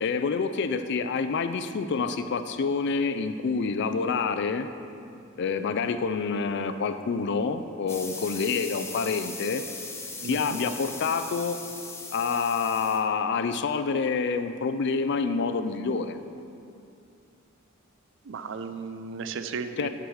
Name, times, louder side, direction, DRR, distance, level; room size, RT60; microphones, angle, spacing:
voice 1, 0.0-4.7 5.4-9.6 10.2-11.6 12.1-16.2 19.8-19.9, left 5 dB, 55° left, 10 dB, 0.4 m, -27 dB
sound 1, 7.9-13.0, left 3 dB, 15° left, 0.7 m, -39 dB
voice 2, 10.2-10.6 18.2-19.9, right 5 dB, 60° right, 9 dB, 0.5 m, -35 dB
10.0 x 4.8 x 6.3 m, 2.7 s
head